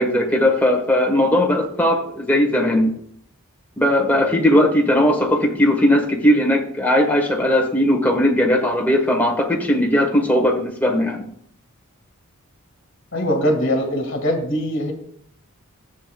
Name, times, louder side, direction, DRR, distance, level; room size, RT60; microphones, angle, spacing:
voice 1, 0.0-2.9 3.8-11.2, left 1 dB, 10° left, 1 dB, 1.3 m, -18 dB
voice 2, 13.1-14.9, equal, 55° left, 4 dB, 1.8 m, -21 dB
14.0 x 7.5 x 2.3 m, 0.65 s
head